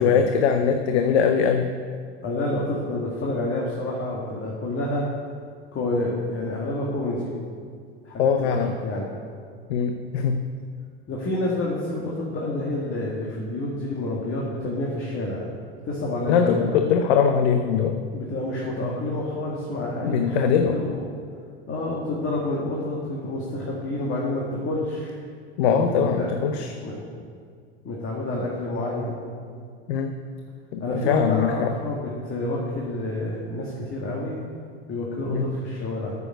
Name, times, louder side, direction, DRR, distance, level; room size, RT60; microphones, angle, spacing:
voice 1, 0.0-1.7 8.2-8.7 9.7-10.5 16.3-18.0 20.0-20.8 25.6-26.7 29.9-30.1 30.7-31.7 35.3-35.5, left 7 dB, 75° left, 7 dB, 0.8 m, -21 dB
voice 2, 2.2-5.1 5.7-7.3 8.0-9.1 11.1-15.4 15.8-16.6 18.1-21.1 21.7-25.1 25.7-26.6 26.8-27.0 27.8-29.2 30.8-34.4 34.9-36.1, left 1 dB, 40° left, -4 dB, 2.1 m, -28 dB
8.9 x 7.1 x 7.9 m, 2.1 s
hypercardioid pair, 95°, 33 cm